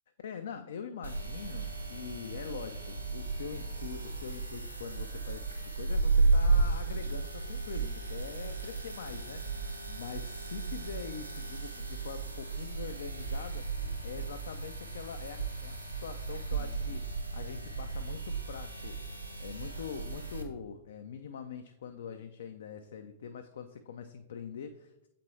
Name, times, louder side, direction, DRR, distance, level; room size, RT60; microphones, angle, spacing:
voice 1, 0.2-25.1, left 6 dB, 60° left, 8 dB, 0.3 m, -44 dB
sound 1, 1.0-20.4, right 3 dB, 85° right, 0.8 m, -34 dB
7.3 x 4.2 x 3.1 m, 0.88 s
figure-of-eight pair, 100°, 0 cm